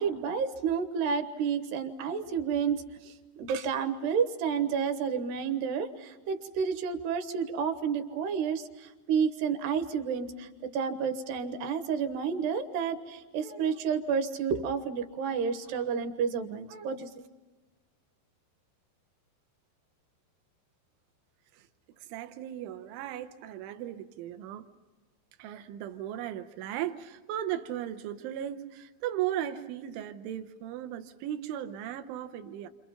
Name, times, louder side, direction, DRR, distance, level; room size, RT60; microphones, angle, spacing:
voice 1, 0.0-17.1, right 6 dB, 70° right, 8 dB, 3.1 m, -30 dB
voice 2, 22.1-24.7 25.4-32.7, right 11 dB, 85° right, 9 dB, 3.3 m, -36 dB
28.5 x 27.5 x 5.7 m, 1.2 s
omnidirectional pair, 5.3 m